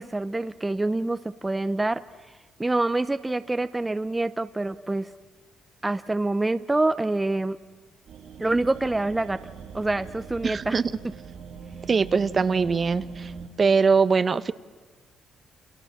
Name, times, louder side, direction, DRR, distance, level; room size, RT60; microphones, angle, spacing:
voice 1, 0.0-2.0 2.6-5.1 5.8-7.6 8.4-9.4 9.7-10.8 11.0-11.1, right 2 dB, 15° right, 11 dB, 0.8 m, -26 dB
sound 1, 8.1-13.5, right 5 dB, 75° right, 3.0 m, -41 dB
voice 2, 10.4-10.8 11.9-13.3 13.6-14.5, right 5 dB, 40° right, 14 dB, 1.0 m, -22 dB
29.0 x 27.5 x 7.4 m, 1.3 s
cardioid pair, 90°, 0 cm